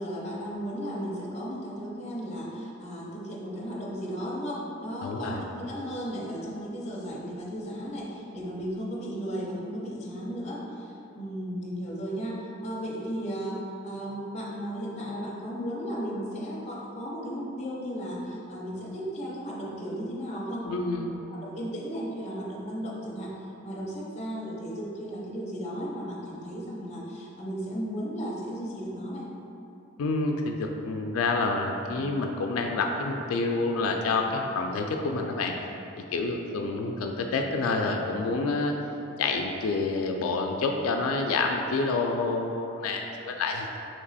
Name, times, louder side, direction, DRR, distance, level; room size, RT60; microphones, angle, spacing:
voice 1, 0.0-20.7 21.1-23.3 23.6-29.3, equal, 30° left, -4 dB, 0.6 m, -35 dB
voice 2, 5.0-5.4 20.7-21.1 30.0-35.5 36.1-38.7 39.2-43.7, left 3 dB, 90° left, 3 dB, 0.3 m, -28 dB
3.3 x 2.9 x 4.1 m, 2.9 s
head